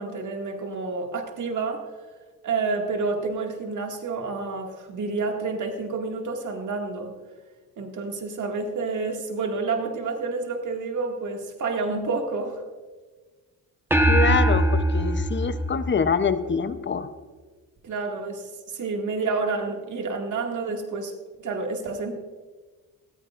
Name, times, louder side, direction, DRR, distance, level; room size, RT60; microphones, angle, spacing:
voice 1, 0.0-1.9 2.4-7.1 7.8-12.6 17.8-21.1 21.4-22.2, right 4 dB, 55° right, 2 dB, 2.2 m, -29 dB
sound 1, 13.9-16.6, right 1 dB, 5° right, 1.1 m, -22 dB
voice 2, 14.1-17.1, left 6 dB, 30° left, 12 dB, 0.8 m, -25 dB
18.5 x 14.5 x 2.5 m, 1.4 s
cardioid pair, 110°, 37 cm